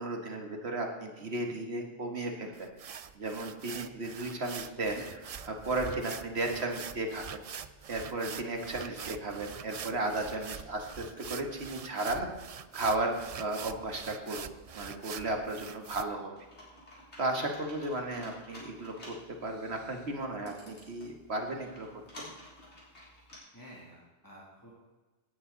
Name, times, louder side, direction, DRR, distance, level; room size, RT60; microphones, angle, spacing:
voice 1, 0.0-2.7 3.1-7.4 7.9-12.3 12.7-14.5 14.7-16.3 17.2-21.9 22.2-22.3, right 2 dB, 70° right, 3 dB, 2.0 m, -34 dB
sound 1, 2.5-16.0, right 7 dB, 50° right, 0.4 m, -44 dB
Computer keyboard, 16.3-23.4, left 1 dB, 85° left, 4.3 m, -52 dB
voice 2, 23.5-24.7, equal, 20° left, -6 dB, 2.6 m, -52 dB
18.0 x 9.3 x 4.0 m, 1.2 s
omnidirectional pair, 1.1 m